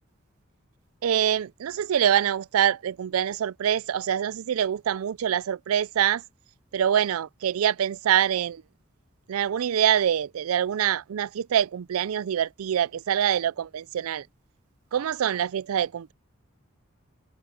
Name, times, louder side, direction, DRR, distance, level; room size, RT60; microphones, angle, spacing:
voice 1, 1.0-6.2 6.7-8.6 9.3-14.3 14.9-16.1, right 9 dB, 90° right, 0.4 m, -25 dB
open air
head